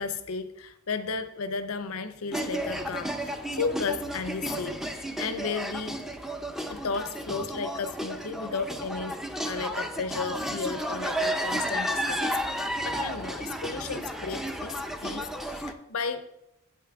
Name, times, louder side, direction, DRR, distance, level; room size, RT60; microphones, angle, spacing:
voice 1, 0.0-6.1 6.7-16.3, left 4 dB, 75° left, 11 dB, 0.7 m, -34 dB
sound 1, 2.3-15.7, equal, ahead, 0.5 m, -32 dB
8.4 x 8.3 x 3.5 m, 0.88 s
head